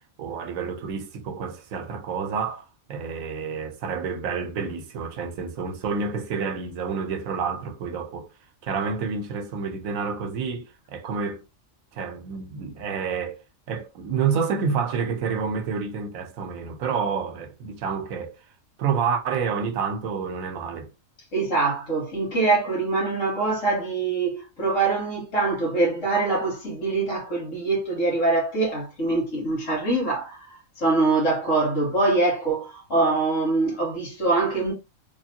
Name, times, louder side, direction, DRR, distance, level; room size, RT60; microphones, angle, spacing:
voice 1, 0.2-8.3 8.6-11.4 11.9-13.4 13.7-18.3 18.8-20.9, right 5 dB, 80° right, 1.2 m, -29 dB
voice 2, 21.3-34.7, right 3 dB, 65° left, 2.1 m, -24 dB
3.5 x 3.2 x 2.8 m
omnidirectional pair, 1.4 m